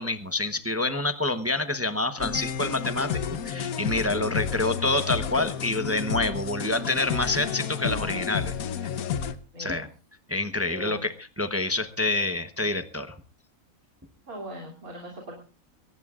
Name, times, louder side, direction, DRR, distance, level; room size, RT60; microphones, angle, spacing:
voice 1, 0.0-8.5 9.6-9.9 10.3-13.1, left 2 dB, 15° right, 9 dB, 0.7 m, -27 dB
sound 1, 2.2-9.4, left 7 dB, 80° left, 1.4 m, -31 dB
voice 2, 9.5-9.9 10.7-11.0 14.3-15.4, equal, 85° right, -1 dB, 3.6 m, -40 dB
22.5 x 18.5 x 2.5 m, 0.35 s
omnidirectional pair, 1.5 m